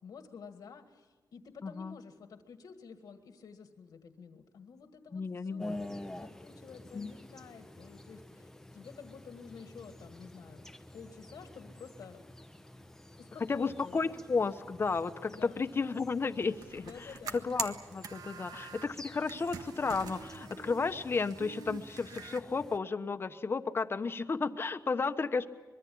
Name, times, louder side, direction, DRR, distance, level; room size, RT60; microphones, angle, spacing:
voice 1, 0.0-10.7 10.9-12.2 13.2-14.2 15.3-15.6 16.7-17.5 18.6-18.8, left 6 dB, 85° left, 7 dB, 1.9 m, -51 dB
voice 2, 1.6-2.0 5.1-5.7 6.9-7.1 13.5-25.5, left 4 dB, 40° left, 10 dB, 1.1 m, -33 dB
sound 1, 5.6-22.8, left 1 dB, 5° left, 1.0 m, -49 dB
sound 2, 16.4-18.9 19.2-22.4, right 6 dB, 85° right, 1.5 m, -44 dB
25.0 x 22.5 x 8.6 m, 1.2 s
wide cardioid pair, 125°, 6 cm